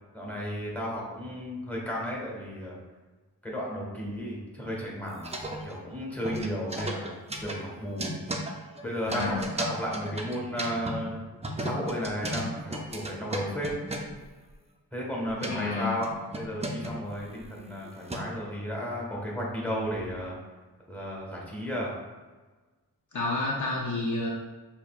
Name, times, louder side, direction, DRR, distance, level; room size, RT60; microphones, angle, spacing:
voice 1, 0.1-2.7 3.4-5.3 5.6-7.1 7.4-8.2 8.8-11.2 11.6-13.7 14.9-20.4 20.9-21.9, equal, 5° left, -4 dB, 1.5 m, -34 dB
sound 1, 5.1-5.9 6.2-11.0 11.4-14.2 15.1-15.5 16.0-18.4, right 1 dB, 15° right, 0.5 m, -35 dB
voice 2, 9.1-9.5 15.4-15.9 23.1-24.3, left 2 dB, 50° left, -2 dB, 0.7 m, -30 dB
6.3 x 2.8 x 2.4 m, 1.3 s
wide cardioid pair, 75°, 38 cm